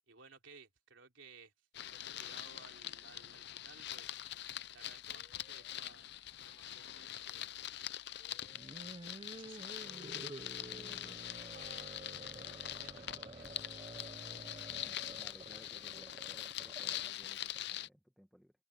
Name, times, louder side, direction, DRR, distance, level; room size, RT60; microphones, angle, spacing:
voice 1, 0.1-1.5 1.9-4.2 4.7-6.1 6.4-8.0 9.0-10.7 11.0-11.1 11.5-14.3, right 4 dB, 70° right, 3.3 m, -60 dB
sound 1, 1.7-17.9, left 12 dB, 55° left, 0.5 m, -44 dB
sound 2, 2.1-13.7, left 3 dB, 25° left, 3.4 m, -73 dB
sound 3, 8.5-17.3, right 2 dB, 25° right, 0.5 m, -51 dB
voice 2, 10.7-11.2 14.8-18.5, equal, ahead, 1.1 m, -60 dB
head